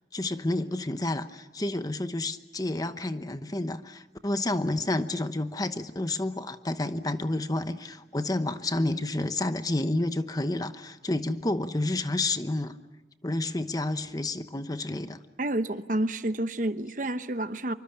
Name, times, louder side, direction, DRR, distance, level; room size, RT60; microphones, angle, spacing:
voice 1, 0.1-12.7 13.2-15.2, left 2 dB, 20° left, 10 dB, 1.0 m, -30 dB
voice 2, 15.4-17.7, right 1 dB, 45° right, 11 dB, 1.0 m, -29 dB
25.5 x 24.5 x 8.7 m, 1.1 s
head